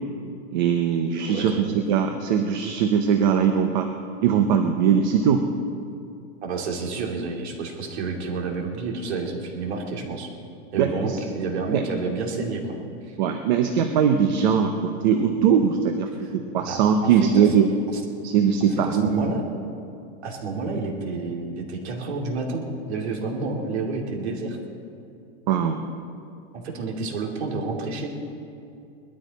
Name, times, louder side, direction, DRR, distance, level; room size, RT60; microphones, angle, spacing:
voice 1, 0.5-1.5 1.9-3.9 4.2-5.4 10.8-11.2 11.7-11.8 13.2-17.7 18.2-19.3 25.5-25.8, right 7 dB, 45° right, 6 dB, 0.8 m, -21 dB
voice 2, 1.3-1.8 6.4-10.3 10.7-12.8 13.0-13.2 16.2-16.3 16.7-17.5 17.9-18.0 18.8-19.4 20.2-24.6 26.5-28.1, right 3 dB, 70° right, 0 dB, 2.8 m, -30 dB
20.5 x 13.0 x 4.2 m, 2.6 s
supercardioid pair, 170°, 33 cm